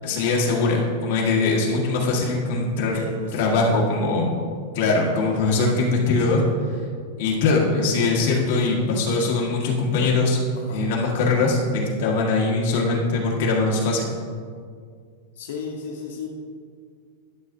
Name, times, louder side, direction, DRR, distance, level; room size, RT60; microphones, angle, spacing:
voice 1, 0.0-3.0 3.3-4.4 4.7-6.4 7.2-10.4 10.7-14.1, left 3 dB, 55° left, -2 dB, 1.6 m, -21 dB
voice 2, 2.9-3.8 10.5-10.8 15.4-16.3, left 5 dB, 85° left, 0 dB, 0.8 m, -33 dB
11.5 x 6.5 x 2.7 m, 2.1 s
supercardioid pair, 175°, 0 cm